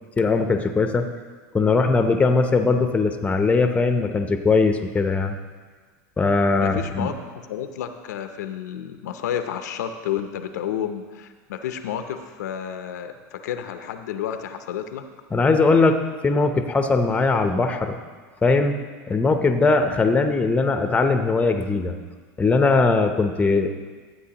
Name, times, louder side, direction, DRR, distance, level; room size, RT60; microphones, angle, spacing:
voice 1, 0.2-1.1 1.5-5.3 6.2-7.1 15.3-16.0 16.2-18.0 18.4-18.7 19.1-21.9 22.4-23.7, left 3 dB, 15° left, 6 dB, 0.7 m, -20 dB
voice 2, 6.6-7.1 7.5-15.1, left 9 dB, 85° left, 8 dB, 0.7 m, -31 dB
13.0 x 7.9 x 2.9 m, 1.5 s
hypercardioid pair, 105°, 9 cm